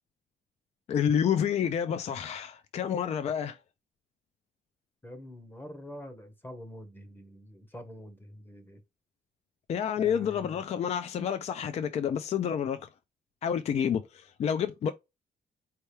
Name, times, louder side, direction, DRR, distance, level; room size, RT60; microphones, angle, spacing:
voice 1, 0.9-3.6 9.7-12.9 13.4-14.9, left 8 dB, 45° left, 0.4 m, -29 dB
voice 2, 5.0-8.8 10.0-10.6, equal, 15° left, 0.8 m, -46 dB
4.5 x 2.8 x 3.3 m
cardioid pair, 170°, 16 cm